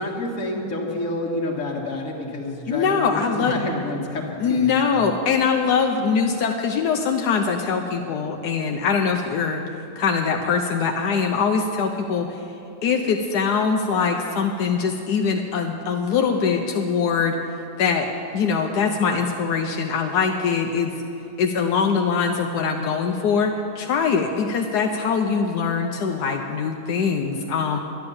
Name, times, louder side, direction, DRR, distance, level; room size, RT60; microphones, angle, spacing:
voice 1, 0.0-5.1, left 1 dB, 60° left, -1 dB, 2.1 m, -29 dB
voice 2, 2.7-3.6 4.4-9.6 10.0-12.4 12.8-17.4 17.8-18.1 18.3-20.9 21.4-27.8, left 5 dB, 85° left, 3 dB, 1.3 m, -22 dB
11.5 x 10.5 x 7.0 m, 2.9 s
omnidirectional pair, 1.7 m